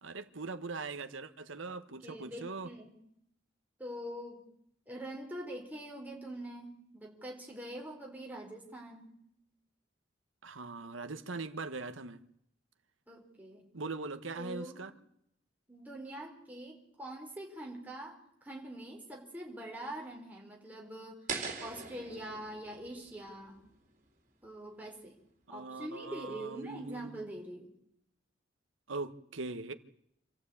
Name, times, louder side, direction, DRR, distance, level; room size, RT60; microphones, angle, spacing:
voice 1, 0.0-2.7 10.4-12.2 13.7-14.9 25.5-27.2 28.9-29.7, right 3 dB, 90° right, 1.3 m, -41 dB
voice 2, 1.9-2.9 3.8-4.4 4.9-9.1 13.1-13.7 14.4-14.9 15.7-21.2 21.6-23.6 24.4-25.2 25.5-27.7, right 1 dB, 10° right, 4.2 m, -44 dB
sound 1, 21.3-24.3, right 5 dB, 40° right, 3.9 m, -42 dB
26.5 x 14.5 x 8.6 m
head